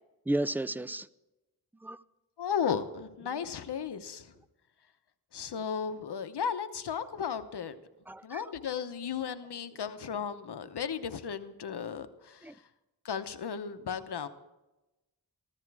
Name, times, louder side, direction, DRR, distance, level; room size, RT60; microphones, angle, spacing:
voice 1, 0.3-1.1 1.8-2.0 8.1-8.4 12.4-12.5, right 1 dB, 5° right, 0.4 m, -32 dB
voice 2, 2.4-4.3 5.3-7.8 8.2-12.5 13.0-14.3, left 7 dB, 85° left, 0.9 m, -35 dB
15.0 x 13.5 x 4.7 m
wide cardioid pair, 65°, 39 cm